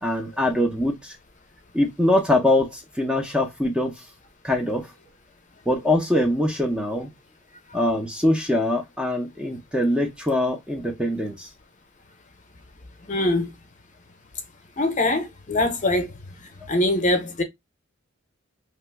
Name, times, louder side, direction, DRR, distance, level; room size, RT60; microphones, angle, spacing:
voice 1, 0.0-1.2 1.7-3.9 4.4-4.9 5.7-7.1 7.7-11.5, left 1 dB, 5° right, 0.5 m, -23 dB
voice 2, 13.1-13.5 14.8-16.1 16.7-17.4, left 1 dB, 40° left, 0.7 m, -22 dB
2.9 x 2.2 x 3.3 m
head